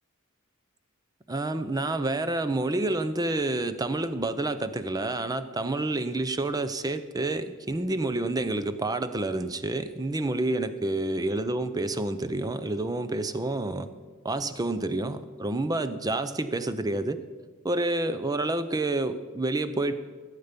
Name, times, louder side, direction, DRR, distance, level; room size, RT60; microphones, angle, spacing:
voice 1, 1.3-13.9 14.2-17.2 17.6-19.9, right 2 dB, 15° right, 11 dB, 0.6 m, -28 dB
16.0 x 8.2 x 5.2 m, 1.4 s
head